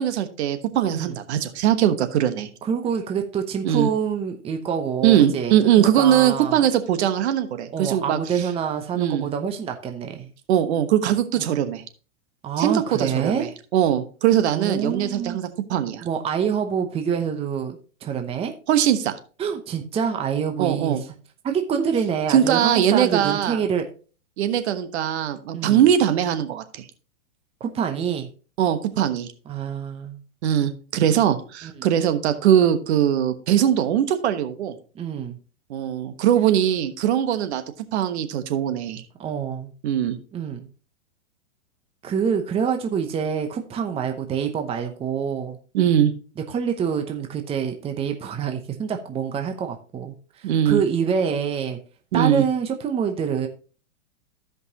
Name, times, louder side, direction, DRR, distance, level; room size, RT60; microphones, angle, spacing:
voice 1, 0.0-2.5 3.6-3.9 5.0-8.5 8.9-9.3 10.5-11.8 12.6-16.0 18.7-19.2 20.6-21.0 22.3-23.6 24.4-26.8 28.6-29.3 30.4-34.8 35.7-37.6 37.9-39.0 39.8-40.2 45.7-46.1 50.4-50.8 52.1-52.4, right 10 dB, 60° right, 10 dB, 1.2 m, -21 dB
voice 2, 2.6-6.6 7.7-10.3 11.4-11.6 12.4-13.5 14.5-15.4 16.0-18.5 19.4-21.0 21.4-23.8 25.5-25.9 27.6-28.3 29.5-30.2 31.6-31.9 34.9-35.4 39.2-39.7 40.3-40.7 42.0-45.6 46.5-51.8 52.1-53.5, right 7 dB, 15° right, 5 dB, 0.8 m, -26 dB
15.0 x 5.4 x 2.9 m, 0.37 s
hypercardioid pair, 125°, 38 cm